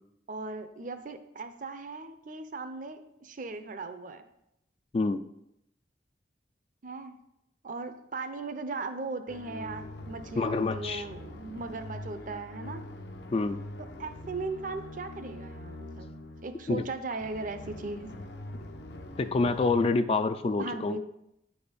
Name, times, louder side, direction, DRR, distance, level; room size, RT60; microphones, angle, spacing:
voice 1, 0.3-4.2 6.8-7.2 7.6-12.8 14.0-16.1 16.4-18.1 20.6-21.0, right 3 dB, 50° right, 9 dB, 0.6 m, -38 dB
sound 1, 9.3-19.9, left 1 dB, 75° left, 0.8 m, -43 dB
voice 2, 10.4-11.1 13.3-13.6 16.7-16.9 19.2-21.0, left 3 dB, 35° left, 10 dB, 0.3 m, -27 dB
9.3 x 4.2 x 5.2 m, 0.82 s
head